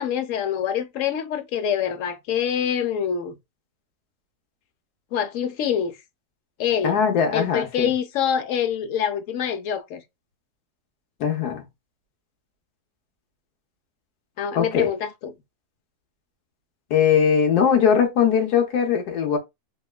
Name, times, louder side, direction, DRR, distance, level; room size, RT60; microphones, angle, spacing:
voice 1, 0.0-3.4 5.1-6.0 6.6-7.0 7.3-10.0 14.4-15.3, left 8 dB, 65° left, 0.9 m, -25 dB
voice 2, 6.8-7.9 11.2-11.6 14.5-14.9 16.9-19.4, left 7 dB, 90° left, 1.4 m, -20 dB
3.5 x 3.1 x 2.2 m
omnidirectional pair, 1.6 m